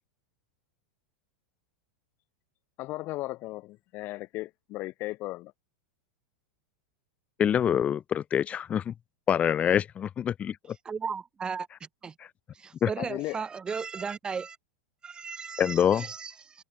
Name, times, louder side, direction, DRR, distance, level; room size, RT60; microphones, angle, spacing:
voice 1, 2.8-5.5 13.0-13.4, left 19 dB, 40° left, 1.7 m, -36 dB
voice 2, 7.4-8.9 9.3-10.8 12.8-12.9 15.6-16.1, left 9 dB, 25° left, 2.3 m, -25 dB
voice 3, 10.9-12.1 12.5-14.6 15.0-16.6, right 5 dB, 15° right, 1.9 m, -36 dB
supercardioid pair, 140°, 6 cm